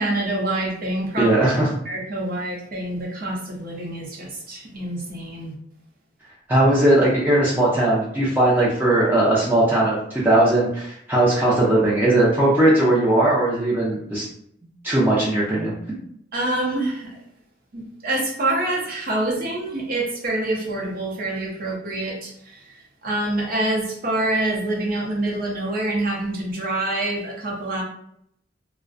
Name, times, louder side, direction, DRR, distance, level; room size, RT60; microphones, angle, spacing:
voice 1, 0.0-1.3 1.8-5.5 16.3-17.1 17.7-27.8, right 2 dB, 50° right, -2 dB, 0.7 m, -26 dB
voice 2, 1.2-1.7 6.5-14.2 14.8-15.7, right 1 dB, 10° right, -7 dB, 0.4 m, -18 dB
2.5 x 2.1 x 2.4 m, 0.73 s
head